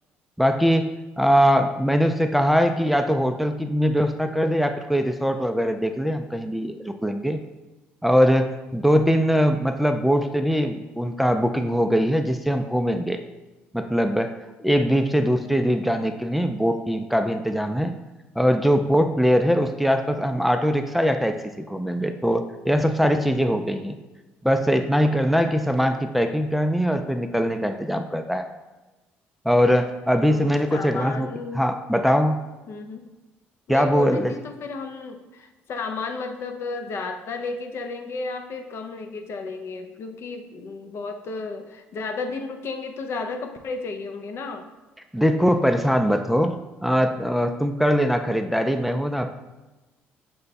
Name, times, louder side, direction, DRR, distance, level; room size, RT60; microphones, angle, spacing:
voice 1, 0.4-0.9 1.2-7.4 8.0-13.2 13.7-14.3 14.6-17.9 18.4-24.0 24.4-28.5 29.5-31.3 31.5-32.4 33.7-34.3 45.1-46.6 46.8-49.3, equal, ahead, 6 dB, 0.3 m, -21 dB
voice 2, 30.3-31.7 32.7-33.1 33.7-44.7, left 3 dB, 60° left, 7 dB, 0.5 m, -33 dB
5.3 x 2.2 x 4.0 m, 1.1 s
supercardioid pair, 75°, 5 cm